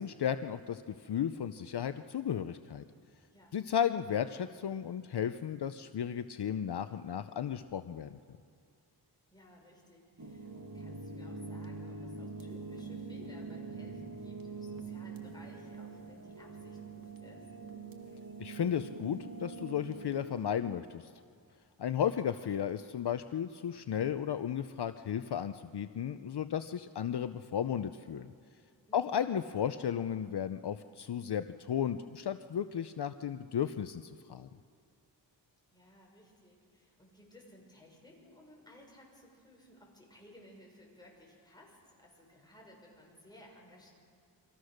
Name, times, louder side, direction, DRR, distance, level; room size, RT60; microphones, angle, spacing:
voice 1, 0.0-2.8 3.5-8.2 18.4-21.1 21.8-28.3 28.9-34.5, left 9 dB, 65° left, 10 dB, 0.7 m, -34 dB
voice 2, 9.3-17.5 28.9-29.3 35.7-43.9, left 1 dB, 10° left, -2 dB, 6.5 m, -58 dB
sound 1, 10.2-20.5, right 3 dB, 55° right, 2.3 m, -44 dB
28.5 x 24.5 x 6.6 m, 2.2 s
wide cardioid pair, 100°, 43 cm